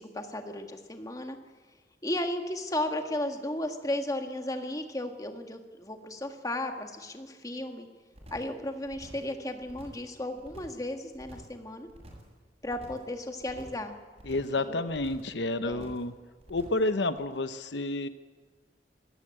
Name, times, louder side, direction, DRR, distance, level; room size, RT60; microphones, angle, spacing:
voice 1, 0.0-1.4 2.0-7.9 8.3-11.9 12.6-13.9 14.6-14.9 15.6-15.9, left 1 dB, 20° left, 5 dB, 1.8 m, -34 dB
sound 1, 8.1-8.5 8.8-9.3 9.6-10.1 10.4-10.8 11.1-11.6 11.9-12.3 12.6-13.1 13.4-13.9 14.2-14.6 14.9-15.3 15.6-16.1 16.4-16.9 17.2-17.3, equal, 35° right, 7.1 m, -50 dB
voice 2, 14.3-16.1 16.5-18.1, left 2 dB, 85° left, 11 dB, 0.9 m, -30 dB
24.5 x 14.5 x 8.9 m, 1.4 s
head